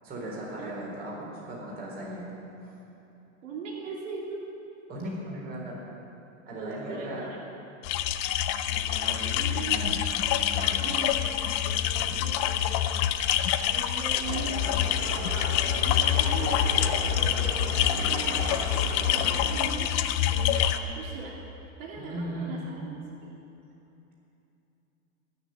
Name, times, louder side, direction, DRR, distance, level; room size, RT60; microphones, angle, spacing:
voice 1, 0.0-2.3 2.6-2.7 4.9-5.8 6.4-7.3 8.4-10.0 10.3-11.0 11.9-12.4 22.0-22.6, right 1 dB, 25° right, -4 dB, 4.2 m, -38 dB
voice 2, 3.4-4.4 6.5-7.4 9.3-9.9 10.4-12.9 13.6-21.4 21.8-23.3, right 3 dB, 70° right, -3 dB, 3.0 m, -40 dB
sound 1, 7.8-20.8, left 10 dB, 30° left, 0.4 m, -26 dB
sound 2, 14.3-19.5, right 2 dB, 40° right, 2.8 m, -37 dB
20.0 x 6.7 x 9.1 m, 2.9 s
supercardioid pair, 155°, 39 cm